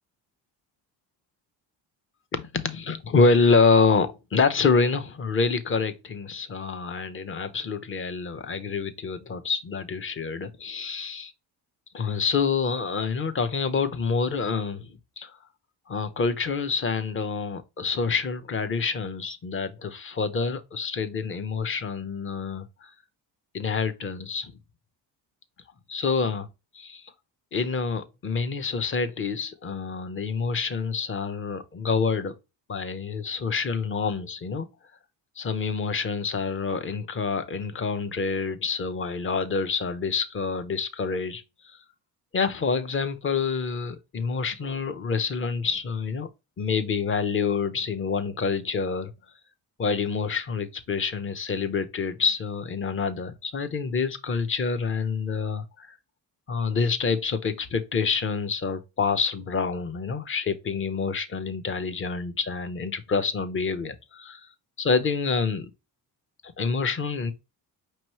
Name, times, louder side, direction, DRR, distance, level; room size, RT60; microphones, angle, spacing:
voice 1, 2.3-11.3 11.9-14.9 15.2-15.4 15.9-22.9 23.5-24.5 25.9-26.5 26.7-27.1 27.5-32.4 32.7-34.7 35.4-41.4 42.3-46.3 46.6-49.1 49.8-56.0 56.5-64.4 64.8-65.7 66.4-67.3, left 5 dB, 30° left, 0.7 m, -27 dB
5.4 x 3.0 x 3.0 m
cardioid pair, 105°, 42 cm